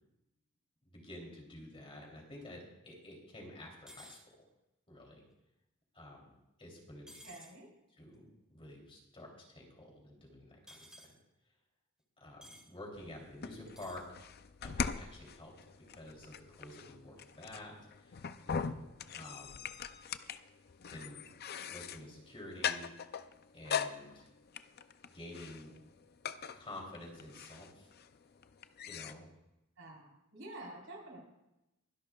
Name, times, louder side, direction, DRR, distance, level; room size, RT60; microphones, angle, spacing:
voice 1, 0.8-4.4 4.9-5.2 5.9-7.2 8.0-10.6 11.1-11.2 12.2-14.0 14.6-15.5 15.9-19.7 20.9-21.2 21.7-22.9 23.5-24.3 25.1-25.8 26.5-27.9 28.8-29.3, left 1 dB, 25° left, -1 dB, 3.2 m, -50 dB
sound 1, 3.9-4.2 7.1-7.5 10.7-11.1 12.4-12.7 13.7-14.0, equal, 5° right, 1.5 m, -54 dB
voice 2, 7.2-7.7 29.8-31.2, right 2 dB, 65° right, -1 dB, 4.1 m, -49 dB
sound 2, 12.9-29.1, left 7 dB, 50° left, 0.5 m, -42 dB
23.0 x 11.0 x 2.4 m, 0.92 s
head